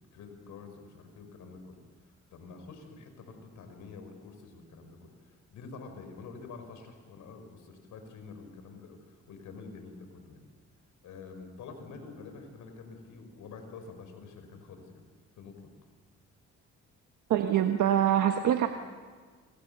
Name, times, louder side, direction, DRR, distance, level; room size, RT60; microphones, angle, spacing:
voice 1, 0.0-1.8 2.1-10.5 11.0-15.0 15.4-15.7, left 4 dB, 80° left, 6 dB, 5.3 m, -47 dB
voice 2, 17.3-18.7, right 10 dB, 75° right, 5 dB, 1.4 m, -24 dB
27.5 x 25.0 x 6.8 m, 1.5 s
cardioid pair, 90°, 30 cm